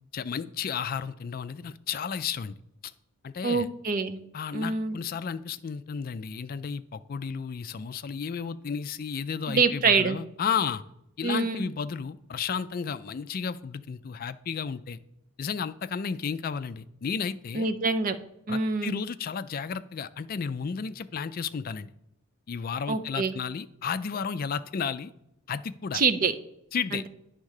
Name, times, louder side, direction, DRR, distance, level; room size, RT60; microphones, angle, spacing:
voice 1, 0.1-2.6 3.2-3.7 4.3-10.8 11.2-15.0 15.4-17.7 18.5-21.9 22.5-25.1 25.5-26.0 26.7-27.0, left 6 dB, 40° left, 13 dB, 0.3 m, -33 dB
voice 2, 3.4-4.2 4.5-5.0 9.5-10.2 11.2-11.7 17.5-18.2 18.5-19.0 22.9-23.3 25.9-26.3 26.9-27.1, right 4 dB, 40° right, 9 dB, 0.5 m, -25 dB
9.6 x 3.6 x 6.5 m, 0.80 s
head